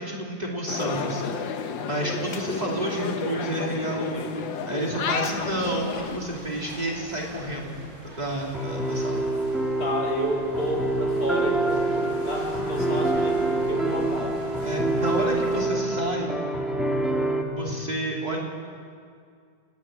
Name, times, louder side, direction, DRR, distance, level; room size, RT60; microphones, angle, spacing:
voice 1, 0.0-1.3 1.8-4.3 4.6-7.8 8.1-9.2 14.6-16.3 17.5-18.4, right 1 dB, 20° right, -3 dB, 2.9 m, -30 dB
sound 1, 0.7-6.2, left 6 dB, 85° left, 1.8 m, -31 dB
sound 2, 5.3-15.7, right 1 dB, 50° right, 8.2 m, -43 dB
sound 3, 8.5-17.4, right 2 dB, ahead, 1.8 m, -26 dB
voice 2, 9.8-14.4, equal, 55° left, -1 dB, 3.3 m, -30 dB
29.5 x 10.5 x 8.8 m, 2.2 s
omnidirectional pair, 2.0 m